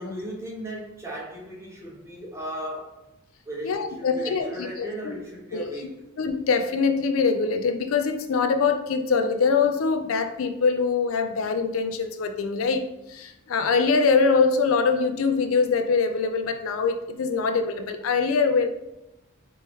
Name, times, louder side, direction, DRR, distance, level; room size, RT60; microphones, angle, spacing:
voice 1, 0.0-3.0 3.5-6.0, right 1 dB, 15° right, -4 dB, 0.9 m, -36 dB
voice 2, 3.6-5.1 5.5-5.7 6.2-18.7, left 5 dB, 80° left, 7 dB, 0.4 m, -23 dB
4.3 x 3.1 x 3.4 m, 0.94 s
head